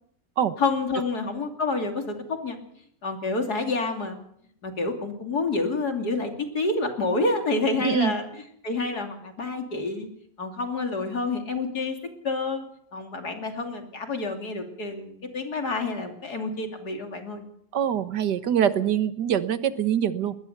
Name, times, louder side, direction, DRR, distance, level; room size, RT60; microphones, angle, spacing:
voice 1, 0.6-2.6 3.0-4.2 4.6-8.2 8.6-10.1 10.4-12.0 12.2-12.6 12.9-17.4, left 3 dB, 65° left, 4 dB, 3.4 m, -28 dB
voice 2, 7.8-8.1 17.7-20.4, right 9 dB, 80° right, 12 dB, 1.8 m, -24 dB
21.0 x 20.5 x 6.7 m, 0.69 s
omnidirectional pair, 1.8 m